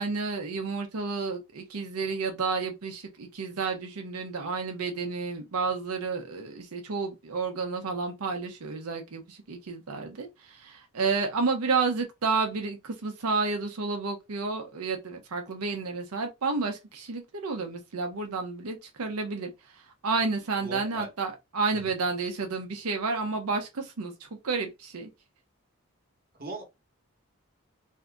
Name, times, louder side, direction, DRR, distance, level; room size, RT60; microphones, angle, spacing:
voice 1, 0.0-19.5 20.0-24.1 24.4-25.1, right 4 dB, 90° right, 0.7 m, -31 dB
voice 2, 20.6-21.1 21.7-21.9 26.4-26.6, right 2 dB, 40° right, 0.9 m, -39 dB
2.7 x 2.5 x 3.4 m
head